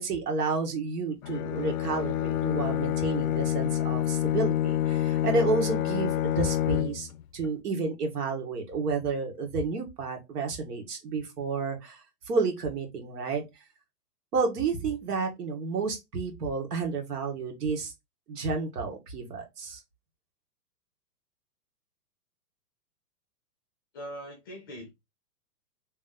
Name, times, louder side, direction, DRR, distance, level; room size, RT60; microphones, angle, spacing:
voice 1, 0.0-7.1 7.3-12.0 12.2-13.4 14.3-17.9 18.3-19.8, right 4 dB, 75° right, 1.8 m, -30 dB
Bowed string instrument, 1.2-7.2, left 12 dB, 60° left, 0.5 m, -28 dB
voice 2, 23.9-24.9, equal, 15° left, 0.5 m, -41 dB
3.2 x 3.1 x 3.8 m
hypercardioid pair, 165°, 47 cm